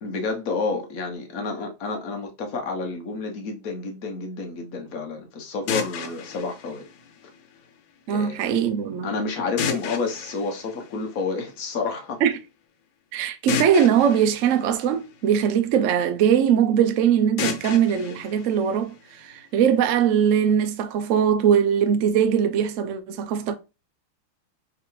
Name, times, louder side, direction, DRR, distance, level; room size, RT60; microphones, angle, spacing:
voice 1, 0.0-6.8 8.1-8.6 9.0-12.2, left 4 dB, 50° left, 1.3 m, -30 dB
sound 1, 5.7-7.7 9.6-11.5 13.5-15.7 17.4-19.4, left 6 dB, 80° left, 1.5 m, -33 dB
voice 2, 8.1-9.1 12.2-12.3 13.1-23.5, right 8 dB, 85° right, 0.6 m, -21 dB
4.9 x 3.3 x 3.1 m
omnidirectional pair, 2.1 m